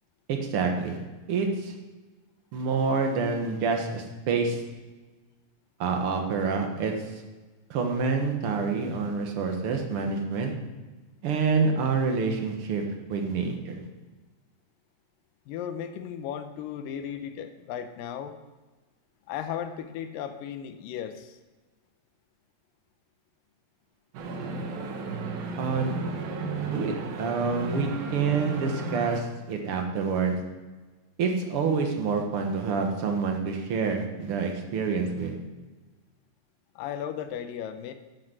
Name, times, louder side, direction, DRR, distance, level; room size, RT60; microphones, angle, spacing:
voice 1, 0.3-1.0 1.3-1.7 2.5-4.6 5.8-6.9 7.7-10.5 11.2-12.8 13.1-13.8 25.6-26.0 26.6-30.4 31.2-35.4, right 5 dB, 55° right, 3 dB, 1.8 m, -27 dB
voice 2, 15.5-18.4 19.3-21.4 36.8-37.9, left 9 dB, 80° left, 9 dB, 2.4 m, -35 dB
sound 1, 24.1-29.2, right 3 dB, 85° right, 3.0 m, -34 dB
12.0 x 8.0 x 6.0 m, 1.2 s
omnidirectional pair, 4.0 m